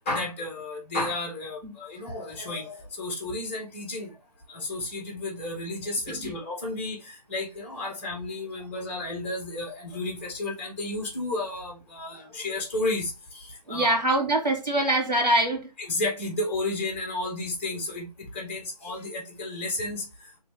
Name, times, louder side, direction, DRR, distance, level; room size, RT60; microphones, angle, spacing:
voice 1, 0.1-4.1 4.5-14.0 15.8-20.4, left 2 dB, 20° left, 1.0 m, -32 dB
voice 2, 13.7-15.6, right 1 dB, 90° right, 1.9 m, -24 dB
3.2 x 3.2 x 3.3 m
figure-of-eight pair, 150°, 21 cm